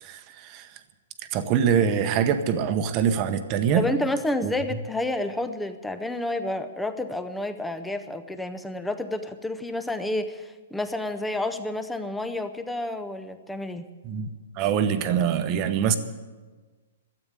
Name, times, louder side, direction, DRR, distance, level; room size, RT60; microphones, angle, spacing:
voice 1, 0.0-0.7 1.3-3.8 4.4-4.5 14.0-14.3 14.6-15.9, right 8 dB, 25° right, 9 dB, 0.9 m, -24 dB
voice 2, 3.8-13.9, left 1 dB, 5° left, 9 dB, 0.6 m, -30 dB
12.5 x 8.8 x 9.6 m, 1.3 s
hypercardioid pair, 165°, 0 cm